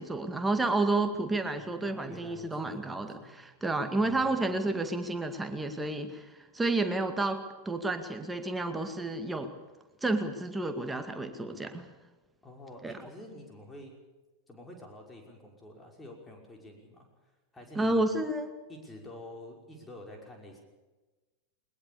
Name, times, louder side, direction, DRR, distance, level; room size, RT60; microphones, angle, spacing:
voice 1, 0.0-6.3 6.5-7.4 7.7-9.5 10.0-11.9 12.8-12.9 17.8-18.5, right 2 dB, 10° right, 7 dB, 2.1 m, -30 dB
voice 2, 1.6-3.3 4.0-4.4 12.4-13.9 14.5-17.1 17.5-18.1 18.7-20.6, left 1 dB, 10° left, 1 dB, 5.6 m, -48 dB
21.5 x 21.0 x 7.0 m, 1.2 s
figure-of-eight pair, 90°, 0 cm